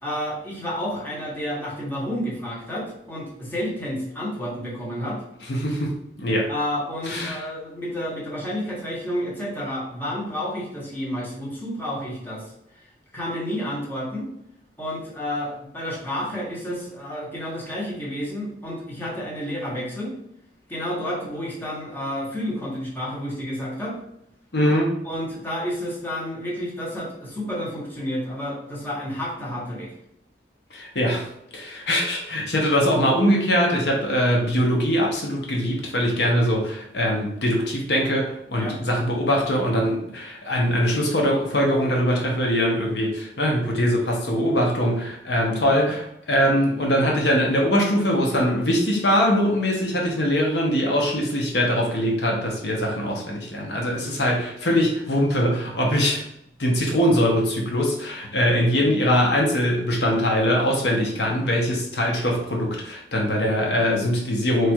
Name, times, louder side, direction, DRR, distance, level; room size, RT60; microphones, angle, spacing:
voice 1, 0.0-5.2 6.5-12.5 13.1-14.3 14.8-20.1 20.7-24.0 25.0-29.9 38.6-38.8 45.5-45.6, equal, 10° left, -5 dB, 1.0 m, -30 dB
voice 2, 5.5-5.9 6.2-6.5 7.0-7.4 24.5-24.9 30.7-56.2 56.6-64.7, equal, 70° left, -1 dB, 0.8 m, -22 dB
3.2 x 2.4 x 4.4 m, 0.77 s
head